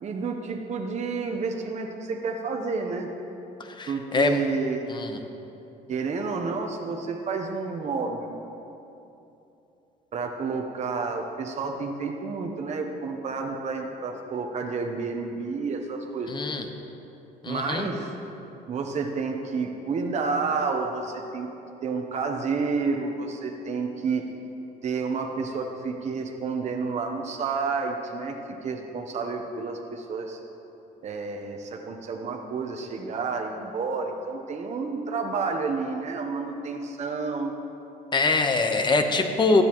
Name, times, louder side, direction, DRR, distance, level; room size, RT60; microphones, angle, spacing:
voice 1, 0.0-3.1 3.9-4.9 5.9-8.3 10.1-16.3 17.5-18.1 18.7-21.5 21.8-24.2 24.8-28.3 28.6-30.4 31.0-37.5, right 4 dB, 40° right, 2 dB, 0.9 m, -30 dB
voice 2, 3.6-4.4 4.9-5.2 16.3-16.6 17.4-17.9 38.1-39.6, left 3 dB, 25° left, 5 dB, 1.0 m, -24 dB
15.5 x 10.5 x 3.1 m, 2.9 s
cardioid pair, 110°, 17 cm